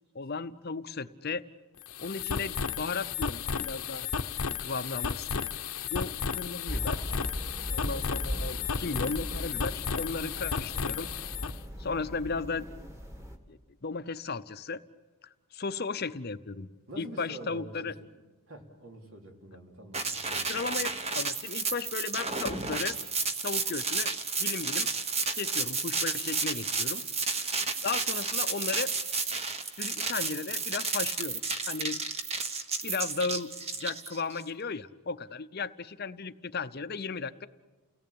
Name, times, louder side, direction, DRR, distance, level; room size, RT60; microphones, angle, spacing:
voice 1, 0.1-1.4 2.0-4.1 4.6-7.1 7.7-11.1 11.4-11.5 11.8-12.7 13.5-14.8 15.5-16.7 17.0-17.9 20.5-23.0 23.4-24.1 24.4-24.9 25.3-27.1 27.8-28.9 29.8-31.4 31.7-32.0 32.8-33.5 33.8-37.5, left 4 dB, 45° left, 12 dB, 0.7 m, -35 dB
sound 1, 1.8-11.6, left 6 dB, 80° left, 0.9 m, -33 dB
sound 2, 6.7-13.4, equal, 15° right, 1.9 m, -38 dB
voice 2, 16.9-18.1 18.5-20.6, right 1 dB, 65° right, 2 dB, 3.9 m, -46 dB
sound 3, 19.9-34.4, right 4 dB, 30° right, 1.3 m, -32 dB
30.0 x 18.0 x 8.7 m, 1.2 s
head